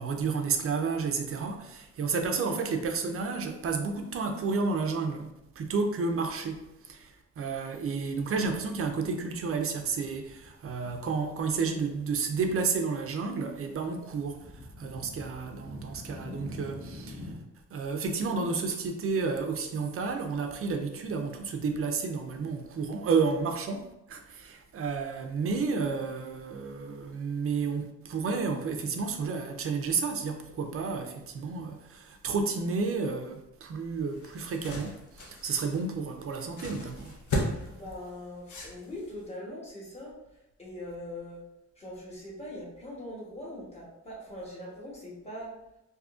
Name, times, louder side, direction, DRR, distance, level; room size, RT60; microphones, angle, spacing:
voice 1, 0.0-6.6 6.8-14.5 14.8-17.3 17.7-37.2, right 4 dB, 50° right, 0.4 m, -31 dB
sound 1, 8.6-9.4 9.7-11.3 11.7-12.6 12.8-17.3, left 1 dB, 40° left, 1.1 m, -46 dB
sound 2, 33.8-39.2, left 1 dB, 70° left, 0.7 m, -37 dB
voice 2, 37.7-40.1 40.6-41.4 41.8-45.5, left 1 dB, 20° left, 1.0 m, -41 dB
3.6 x 2.6 x 2.4 m
wide cardioid pair, 160°, 30 cm